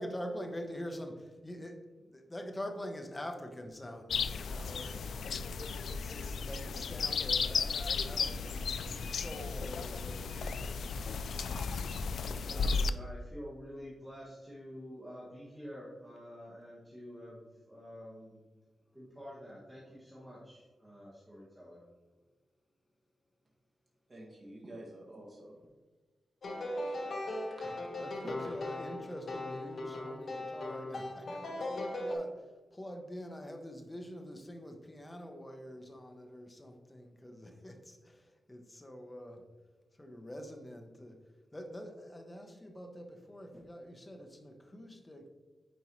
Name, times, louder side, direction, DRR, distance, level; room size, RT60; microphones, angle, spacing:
voice 1, 0.0-1.8 2.1-5.2 5.8-11.0 28.0-32.4 32.7-39.4 40.0-41.2 41.5-45.3, equal, 15° left, 4 dB, 0.8 m, -45 dB
sound 1, 4.1-12.9, left 5 dB, 75° left, 0.3 m, -34 dB
voice 2, 12.2-18.4 18.9-21.8, equal, 5° right, -8 dB, 1.4 m, -48 dB
voice 3, 24.1-25.6 26.8-27.3 27.6-28.6, right 1 dB, 25° right, -4 dB, 1.8 m, -50 dB
sound 2, 26.4-32.1, left 1 dB, 55° left, 1.3 m, -38 dB
9.6 x 4.5 x 3.1 m, 1.3 s
wide cardioid pair, 150°, 0 cm